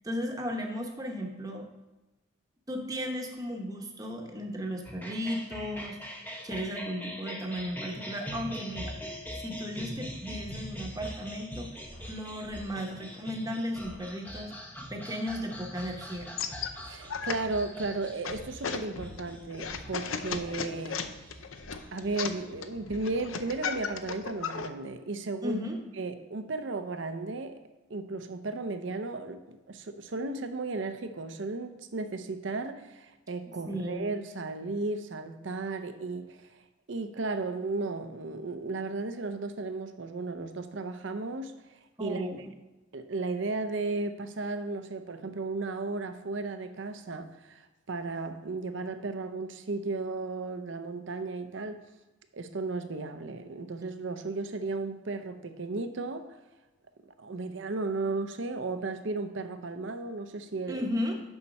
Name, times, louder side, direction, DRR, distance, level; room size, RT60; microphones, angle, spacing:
voice 1, 0.0-1.7 2.7-6.0 6.4-8.9 9.3-14.5 14.9-16.3 25.4-25.8 33.7-34.0 42.0-42.5 60.7-61.2, equal, 20° right, 2 dB, 0.9 m, -35 dB
sound 1, 4.8-22.5, equal, 10° left, 0.7 m, -43 dB
sound 2, 10.5-14.7 18.3-22.5, right 1 dB, 30° left, 2.0 m, -54 dB
sound 3, 16.1-24.7, left 6 dB, 75° left, 0.6 m, -37 dB
voice 2, 16.8-21.0 21.9-25.6 26.0-27.6 27.9-36.6 36.9-41.5 42.0-42.3 42.9-51.8 52.3-56.3 57.1-60.9, right 3 dB, 65° right, 9 dB, 0.6 m, -35 dB
7.1 x 5.8 x 5.3 m, 1.1 s
head